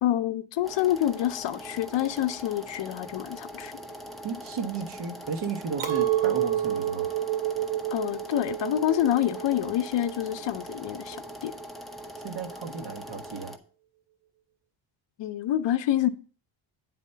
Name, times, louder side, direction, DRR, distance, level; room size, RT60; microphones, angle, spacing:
voice 1, 0.0-3.7 7.9-11.5 15.2-16.1, left 12 dB, 60° left, 0.6 m, -27 dB
sound 1, 0.6-13.6, equal, ahead, 0.7 m, -42 dB
voice 2, 4.2-7.1 12.2-13.6, right 5 dB, 55° right, 1.4 m, -34 dB
Chink clink, 5.8-11.2, right 12 dB, 90° right, 2.0 m, -30 dB
9.2 x 4.2 x 5.5 m
cardioid pair, 150°, 49 cm